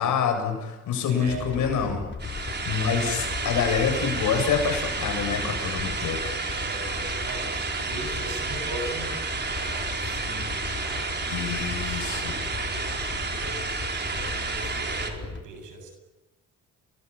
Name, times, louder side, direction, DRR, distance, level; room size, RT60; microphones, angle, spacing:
voice 1, 0.0-2.0 2.3-6.4 11.3-12.4, left 7 dB, 80° left, 5 dB, 7.7 m, -27 dB
voice 2, 1.1-2.0 6.5-13.6 14.0-15.9, right 2 dB, 85° right, 5 dB, 7.4 m, -39 dB
sound 1, 1.3-15.4, left 5 dB, 40° left, 5.0 m, -37 dB
sound 2, 2.2-15.1, right 4 dB, 35° right, 4.5 m, -31 dB
28.5 x 21.5 x 8.7 m, 1.2 s
cardioid pair, 90°, 30 cm